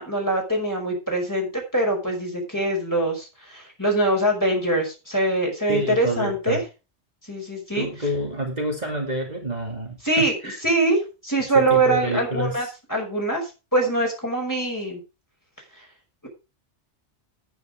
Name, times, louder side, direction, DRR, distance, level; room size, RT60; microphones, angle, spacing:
voice 1, 0.0-6.6 7.3-7.9 10.0-10.3 10.6-15.0, right 2 dB, 15° left, 0 dB, 5.5 m, -23 dB
voice 2, 5.7-6.6 7.7-10.6 11.5-12.7, equal, 35° right, -1 dB, 2.9 m, -28 dB
10.5 x 9.5 x 5.0 m, 0.31 s
omnidirectional pair, 1.2 m